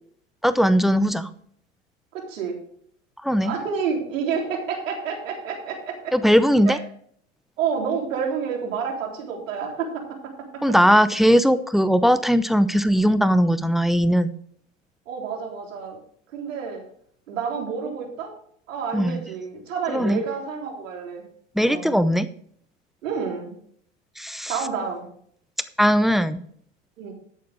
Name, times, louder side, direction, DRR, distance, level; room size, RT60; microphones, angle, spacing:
voice 1, 0.4-1.3 3.2-3.5 6.1-6.8 10.6-14.3 18.9-19.2 19.9-20.2 21.5-22.3 24.2-24.5 25.8-26.4, equal, ahead, 13 dB, 0.7 m, -19 dB
voice 2, 2.1-2.6 3.4-6.1 6.7-6.8 7.6-10.6 15.1-16.0 16.3-16.8 17.3-18.3 18.7-21.2 21.6-21.9 23.0-23.5 24.5-25.1 27.0-27.1, right 6 dB, 75° right, 1 dB, 3.6 m, -29 dB
12.5 x 8.6 x 3.6 m, 0.62 s
hypercardioid pair, 90°, 39 cm